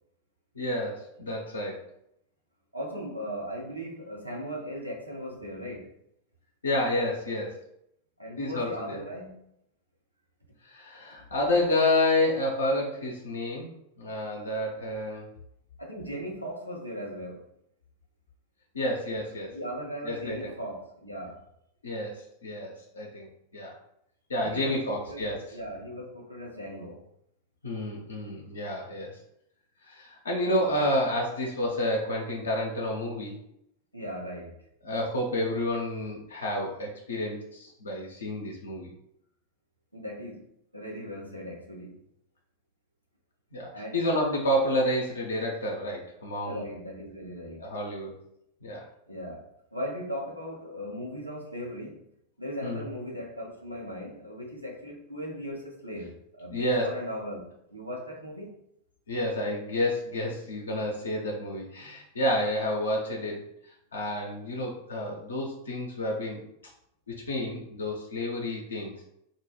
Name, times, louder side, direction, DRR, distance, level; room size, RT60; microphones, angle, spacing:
voice 1, 0.6-1.8 6.6-7.6 8.4-9.0 10.6-15.3 18.7-19.5 20.0-20.5 21.8-23.8 24.3-25.6 27.6-29.1 29.8-33.4 34.8-38.9 43.5-46.6 47.6-48.1 48.6-48.9 52.6-52.9 56.5-57.0 59.1-63.4 63.9-66.4 67.1-68.9, left 1 dB, 70° left, -1 dB, 0.5 m, -30 dB
voice 2, 2.7-5.9 8.2-9.4 15.8-17.5 19.5-21.4 24.4-27.0 33.9-34.5 39.9-40.4 40.7-42.0 43.7-44.0 46.4-47.6 49.1-49.5 49.7-52.0 52.4-57.4 57.7-58.5, equal, 90° right, -2 dB, 0.6 m, -38 dB
2.1 x 2.0 x 3.1 m, 0.77 s
figure-of-eight pair, 90°, 0 cm